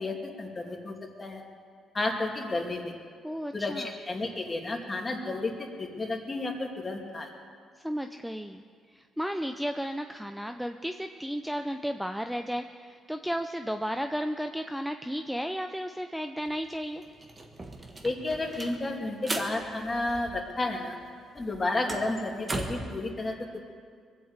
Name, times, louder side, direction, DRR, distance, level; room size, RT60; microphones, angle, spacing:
voice 1, 0.0-1.4 1.9-2.9 3.5-7.3 18.0-21.0 21.3-23.6, left 2 dB, 25° left, 1 dB, 2.5 m, -32 dB
voice 2, 3.2-3.9 7.8-8.6 9.2-12.6 13.1-17.0, equal, ahead, 6 dB, 0.6 m, -33 dB
sound 1, 16.5-16.6 16.8-20.8 21.0-23.0, right 2 dB, 25° right, 1.7 m, -38 dB
21.5 x 8.1 x 8.1 m, 2.1 s
cardioid pair, 90°, 0 cm